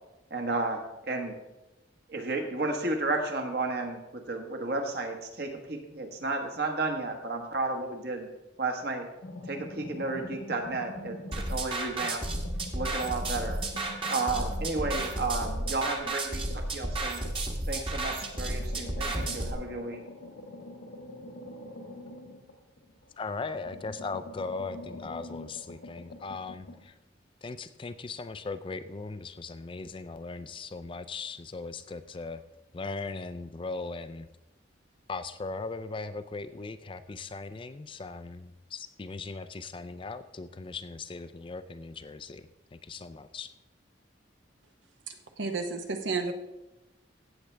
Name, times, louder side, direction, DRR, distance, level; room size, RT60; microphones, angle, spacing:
voice 1, 0.3-1.3 2.1-8.3 8.6-9.1 9.5-12.2 12.7-13.6 14.1-17.2 17.7-20.0, right 3 dB, 55° right, 4 dB, 1.4 m, -32 dB
sound 1, 9.2-11.7 12.0-17.6 18.1-23.1 23.5-26.8, left 1 dB, 70° left, 1.4 m, -45 dB
sound 2, 11.3-19.5, right 2 dB, 30° right, 1.1 m, -32 dB
voice 2, 23.2-26.9 27.4-32.4 32.7-34.3 35.1-42.4 42.7-43.5, left 4 dB, 25° left, 12 dB, 0.4 m, -38 dB
voice 3, 45.4-46.3, right 4 dB, 75° right, 6 dB, 1.0 m, -31 dB
16.0 x 7.4 x 3.3 m, 0.99 s
head